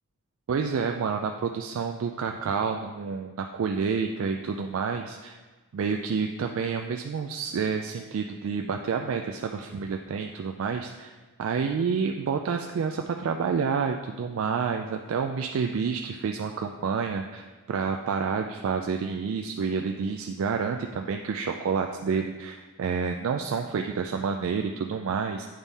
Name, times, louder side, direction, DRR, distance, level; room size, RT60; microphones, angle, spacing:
voice 1, 0.5-5.4 5.7-11.1 11.4-25.5, right 5 dB, 65° right, 4 dB, 0.3 m, -29 dB
8.8 x 3.6 x 4.0 m, 1.3 s
head